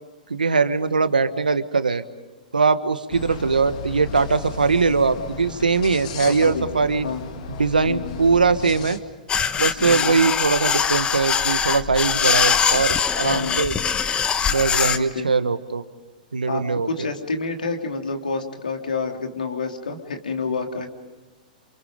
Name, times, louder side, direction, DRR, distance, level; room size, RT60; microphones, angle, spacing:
voice 1, 0.3-2.0 2.5-7.1 7.6-9.0 9.6-13.7 14.4-15.8 16.3-16.9, right 4 dB, 90° right, 11 dB, 1.4 m, -21 dB
sound 1, 3.1-9.0, left 4 dB, 60° left, 2.2 m, -35 dB
voice 2, 6.2-6.6 7.0-7.3 7.8-8.2 9.8-10.2 13.2-13.7 14.9-15.3 16.5-20.9, left 4 dB, 80° left, 4 dB, 3.0 m, -28 dB
sound 2, 9.3-15.0, left 7 dB, 20° left, 1.1 m, -22 dB
28.5 x 28.0 x 5.2 m, 1.3 s
hypercardioid pair, 110°, 4 cm